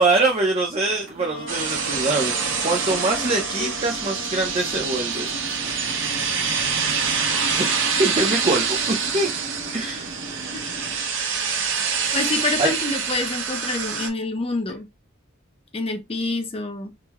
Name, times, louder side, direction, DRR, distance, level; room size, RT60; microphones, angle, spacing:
voice 1, 0.0-2.3 2.6-5.3 7.6-7.7 8.0-9.3 9.7-10.1 12.6-12.7, right 2 dB, 30° right, 0.6 m, -23 dB
sound 1, 0.8-11.1, equal, 85° right, 1.3 m, -39 dB
Wind instrument woodwind instrument, 1.2-8.6, left 1 dB, 75° left, 0.8 m, -40 dB
sound 2, 1.5-14.1, right 6 dB, 65° right, 0.8 m, -26 dB
voice 2, 12.1-14.9 15.7-16.9, left 3 dB, 30° left, 0.5 m, -27 dB
3.7 x 2.1 x 2.9 m
head